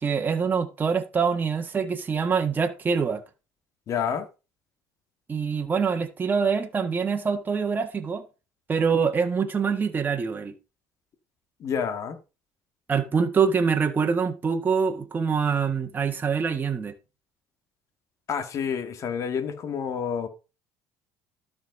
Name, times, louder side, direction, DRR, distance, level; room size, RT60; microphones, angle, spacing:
voice 1, 0.0-3.2 5.3-8.2 8.7-10.5 12.9-16.9, right 6 dB, 25° right, 1.6 m, -25 dB
voice 2, 3.9-4.3 11.6-12.2 18.3-20.3, left 7 dB, 50° left, 1.9 m, -29 dB
12.5 x 5.3 x 5.2 m
supercardioid pair, 90°, 7 cm